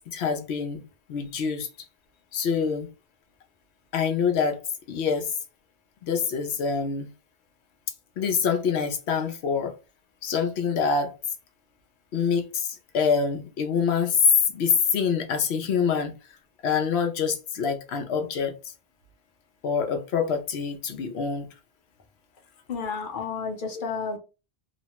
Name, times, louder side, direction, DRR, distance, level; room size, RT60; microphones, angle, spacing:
voice 1, 0.1-0.8 1.1-1.9 2.3-2.9 3.9-4.6 4.9-5.3 6.0-7.1 8.2-9.7 10.2-11.1 12.1-14.3 14.5-16.1 16.6-18.7 19.6-21.5 23.7-23.8, left 6 dB, 90° left, 0.9 m, -26 dB
voice 2, 22.7-24.2, left 5 dB, 55° left, 0.8 m, -31 dB
3.1 x 2.1 x 2.8 m
omnidirectional pair, 1.1 m